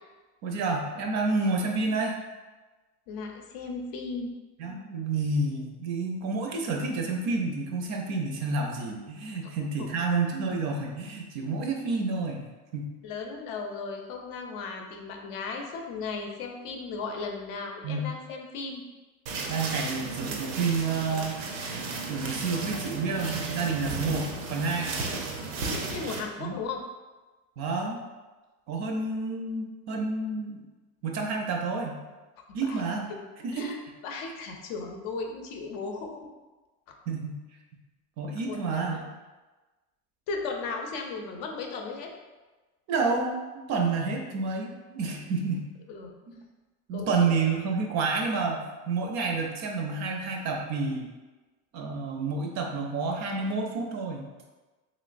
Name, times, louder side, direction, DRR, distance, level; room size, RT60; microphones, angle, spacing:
voice 1, 0.4-2.2 4.6-12.4 12.7-12.9 17.8-18.1 19.5-21.4 21.7-25.0 26.4-26.6 27.6-28.0 28.7-30.6 31.0-32.0 32.5-33.1 33.4-33.8 37.1-37.4 38.2-39.1 42.9-45.7 46.9-51.1 51.7-54.2, right 4 dB, 45° right, 2 dB, 0.5 m, -29 dB
voice 2, 3.1-4.3 9.8-9.9 13.0-18.8 25.9-26.8 32.5-32.8 33.1-33.2 33.5-33.8 34.0-36.2 38.5-39.0 40.3-42.1 45.9-46.1 46.9-47.1, left 4 dB, 55° left, 2 dB, 0.6 m, -36 dB
sound 1, 19.3-26.2, right 3 dB, 85° right, 0.7 m, -34 dB
3.1 x 3.0 x 2.4 m, 1.2 s
supercardioid pair, 125°, 41 cm